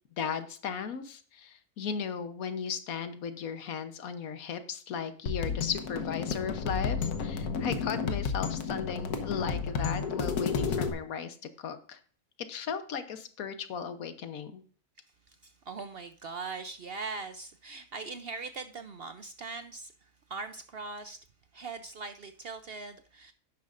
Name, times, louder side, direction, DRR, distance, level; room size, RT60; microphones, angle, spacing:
voice 1, 0.2-12.0 12.4-14.6, left 7 dB, 70° left, 10 dB, 1.3 m, -36 dB
sound 1, 5.3-10.9, left 5 dB, 90° left, 1.5 m, -31 dB
voice 2, 15.3-21.2 21.5-23.3, right 4 dB, 60° right, 9 dB, 0.6 m, -41 dB
11.5 x 9.5 x 2.5 m, 0.43 s
omnidirectional pair, 1.6 m